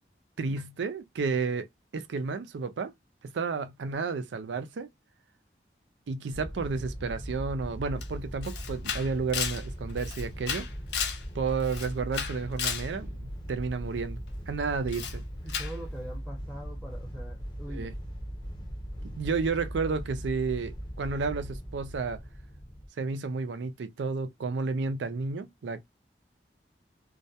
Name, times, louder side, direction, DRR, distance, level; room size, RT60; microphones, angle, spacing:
voice 1, 0.4-1.7 1.9-2.9 3.2-4.9 6.1-10.7 11.3-14.2 14.5-15.2 17.7-17.9 19.0-22.2 23.0-25.8, right 4 dB, 90° right, 0.4 m, -31 dB
sound 1, 6.3-22.9, equal, 25° left, 0.6 m, -39 dB
Camera, 8.0-8.1 8.4-11.2 11.6-12.9 14.9-15.2 15.5-15.8, left 7 dB, 80° left, 0.5 m, -34 dB
voice 2, 15.4-17.9, right 1 dB, 5° right, 0.7 m, -43 dB
2.3 x 2.1 x 2.7 m
head